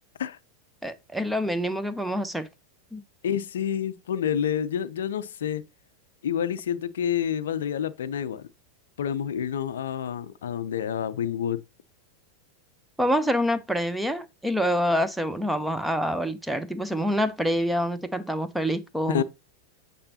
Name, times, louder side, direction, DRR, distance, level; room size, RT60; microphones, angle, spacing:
voice 1, 0.8-2.5 2.9-3.0 13.0-19.2, equal, ahead, 0.7 m, -26 dB
voice 2, 3.2-5.6 6.2-8.4 9.0-11.6 19.1-19.2, left 9 dB, 60° left, 0.5 m, -28 dB
8.7 x 4.9 x 2.7 m
figure-of-eight pair, 90°, 0 cm